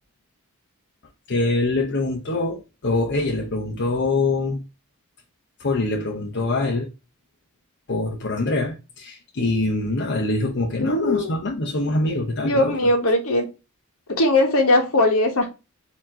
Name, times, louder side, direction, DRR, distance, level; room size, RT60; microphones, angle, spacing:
voice 1, 1.3-4.6 5.6-6.9 7.9-12.9, left 2 dB, 55° left, 0.8 m, -24 dB
voice 2, 10.8-11.3 12.4-13.5 14.1-15.5, left 2 dB, 75° left, 1.2 m, -19 dB
4.5 x 2.9 x 3.7 m
head